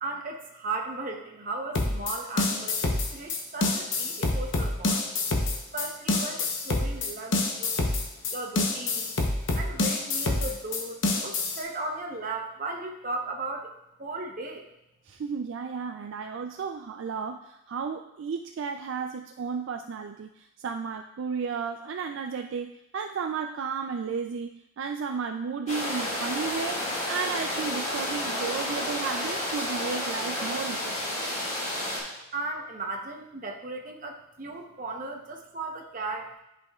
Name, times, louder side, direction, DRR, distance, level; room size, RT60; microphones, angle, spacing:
voice 1, 0.0-5.0 5.7-7.8 8.3-9.1 9.6-11.0 11.2-13.6 14.0-14.6 32.3-34.1 34.4-36.3, right 2 dB, 40° right, 2 dB, 0.8 m, -36 dB
sound 1, 1.7-11.6, left 2 dB, 60° left, 0.8 m, -27 dB
voice 2, 15.1-31.2, right 6 dB, 65° right, 5 dB, 0.3 m, -33 dB
sound 2, 25.7-32.0, left 1 dB, 30° left, 1.9 m, -31 dB
11.0 x 5.1 x 2.3 m, 0.85 s
head